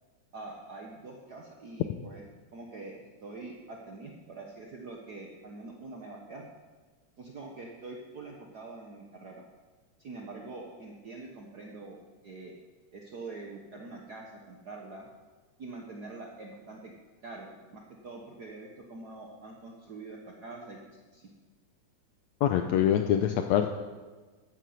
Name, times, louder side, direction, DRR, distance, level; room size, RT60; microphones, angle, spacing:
voice 1, 0.3-2.2 2.5-2.9 3.2-6.5 7.2-9.4 10.0-12.5 12.9-15.1 15.6-16.9 17.2-21.3, right 3 dB, 65° right, 0 dB, 1.0 m, -44 dB
voice 2, 22.4-23.7, left 10 dB, 80° left, 6 dB, 1.7 m, -24 dB
12.5 x 9.4 x 7.9 m, 1.4 s
omnidirectional pair, 3.6 m